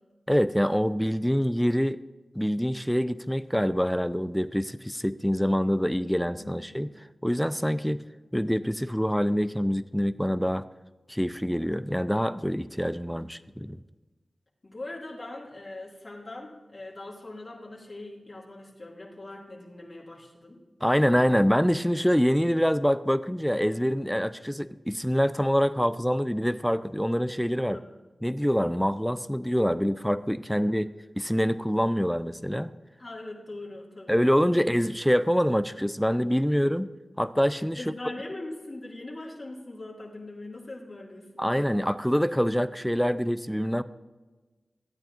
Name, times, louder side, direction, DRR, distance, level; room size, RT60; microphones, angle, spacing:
voice 1, 0.3-2.0 2.4-6.9 7.2-8.0 8.3-10.6 11.1-13.8 20.8-27.8 28.2-32.7 34.1-36.9 37.2-37.9 41.4-43.8, equal, ahead, 14 dB, 0.3 m, -25 dB
voice 2, 6.3-6.6 14.6-20.6 27.7-27.9 33.0-34.2 34.5-34.6 37.8-41.9, left 2 dB, 50° left, -3 dB, 2.1 m, -41 dB
15.5 x 8.7 x 2.5 m, 1.2 s
cardioid pair, 45°, 0 cm